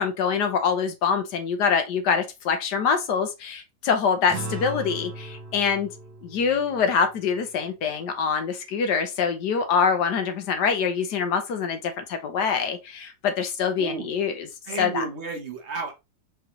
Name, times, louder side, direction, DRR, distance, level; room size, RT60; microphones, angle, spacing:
voice 1, 0.0-5.9 6.2-14.5 14.8-15.0, left 6 dB, 75° left, 1.4 m, -25 dB
sound 1, 4.3-8.9, right 2 dB, 65° right, 1.5 m, -39 dB
voice 2, 13.8-14.1 14.7-15.9, right 4 dB, 50° right, 0.9 m, -32 dB
4.9 x 3.2 x 2.9 m
omnidirectional pair, 1.9 m